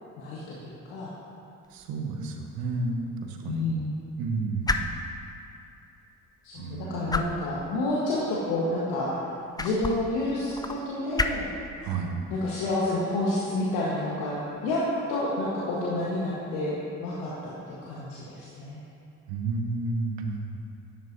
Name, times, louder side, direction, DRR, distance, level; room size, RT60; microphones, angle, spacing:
voice 1, 0.2-1.1 3.4-4.0 6.4-9.1 9.6-11.5 12.3-14.8 15.1-18.8, left 2 dB, 70° left, -6 dB, 1.4 m, -29 dB
sound 1, 1.6-15.2, left 3 dB, 10° left, 0.4 m, -37 dB
voice 2, 1.7-3.6 4.2-4.9 6.6-7.1 11.8-12.2 19.3-20.6, right 3 dB, 65° right, 3 dB, 1.1 m, -31 dB
10.5 x 9.0 x 2.7 m, 2.6 s
hypercardioid pair, 50°, 39 cm